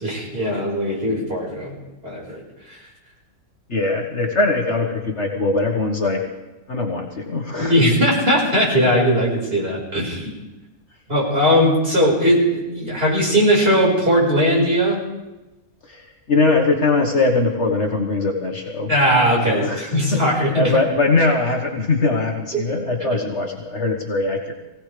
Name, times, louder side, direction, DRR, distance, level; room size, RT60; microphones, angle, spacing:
voice 1, 0.0-1.8 2.0-2.4 2.7-2.8 7.6-10.3 11.1-15.0 18.9-20.8 22.5-22.6 23.0-23.2, equal, 40° right, -4 dB, 5.2 m, -19 dB
voice 2, 3.7-6.2 6.7-7.7 15.9-18.9 19.4-24.5, left 3 dB, 50° left, 0 dB, 1.8 m, -21 dB
23.5 x 17.0 x 3.4 m, 1.0 s
omnidirectional pair, 1.6 m